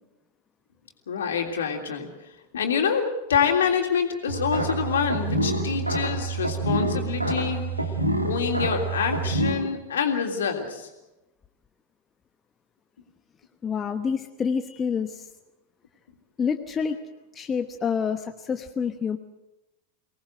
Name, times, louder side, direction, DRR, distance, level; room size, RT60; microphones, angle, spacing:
voice 1, 1.1-2.1 2.5-7.6 8.2-10.9, left 6 dB, 65° left, 3 dB, 3.3 m, -26 dB
sound 1, 4.3-9.5, right 2 dB, 90° right, 2.6 m, -27 dB
voice 2, 13.6-15.3 16.4-17.0 17.3-19.2, left 6 dB, 20° left, 7 dB, 1.1 m, -27 dB
24.0 x 18.5 x 7.9 m, 0.95 s
figure-of-eight pair, 90°, 0 cm